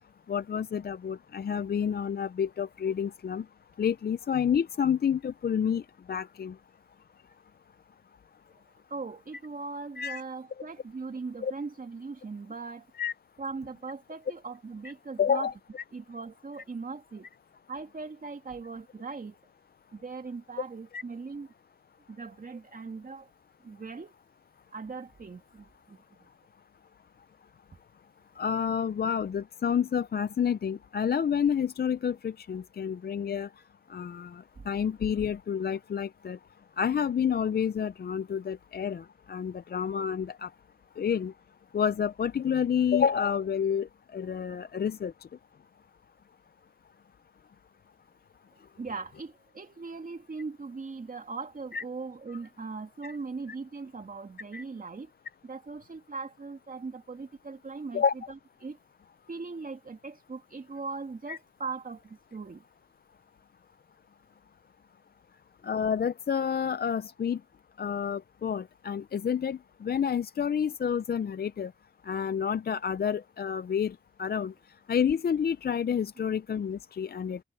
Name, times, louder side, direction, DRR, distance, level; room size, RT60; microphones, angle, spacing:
voice 1, 0.3-3.4 3.8-5.8 6.1-6.5 10.0-10.2 11.4-11.5 13.0-13.1 15.2-15.5 20.9-21.0 28.4-33.5 33.9-36.4 36.8-40.5 41.0-41.3 41.7-45.1 51.7-51.8 53.0-53.2 54.5-54.6 57.9-58.1 61.3-61.4 65.6-67.4 67.8-71.7 72.1-74.5 74.9-77.4, left 7 dB, 50° left, 0.6 m, -29 dB
voice 2, 8.9-12.9 13.4-15.5 15.9-17.3 17.7-19.4 19.9-21.5 22.1-23.3 23.6-24.1 24.7-26.0 34.6-34.7 48.8-55.1 55.4-58.8 59.3-62.6, right 4 dB, 40° right, 2.4 m, -39 dB
cardioid pair, 60°, 21 cm